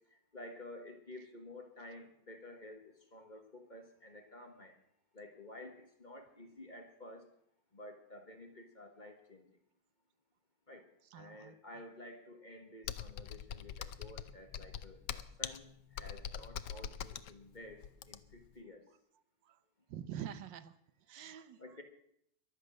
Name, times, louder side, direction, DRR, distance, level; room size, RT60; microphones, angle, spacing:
voice 1, 0.3-4.7 5.1-7.2 7.7-9.4 10.7-10.8 11.1-18.8 21.6-21.8, left 1 dB, 25° left, 5 dB, 1.7 m, -52 dB
voice 2, 11.1-11.5 19.4-19.6 19.9-20.8 21.1-21.6, right 10 dB, 85° right, 13 dB, 1.6 m, -45 dB
Computer keyboard, 12.8-18.5, left 9 dB, 70° left, 1.3 m, -43 dB
22.5 x 8.1 x 6.4 m, 0.72 s
omnidirectional pair, 1.9 m